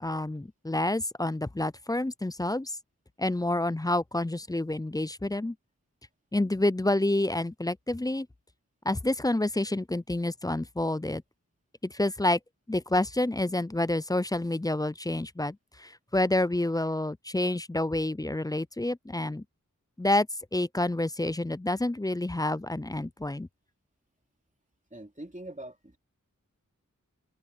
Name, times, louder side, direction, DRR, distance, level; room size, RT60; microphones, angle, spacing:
voice 1, 0.0-2.8 3.2-5.6 6.3-8.3 8.9-11.2 11.8-12.4 12.7-19.4 20.0-23.5, left 1 dB, 10° left, 0.4 m, -28 dB
voice 2, 24.9-26.0, right 1 dB, 25° right, 3.3 m, -43 dB
open air
wide cardioid pair, 40°, 32 cm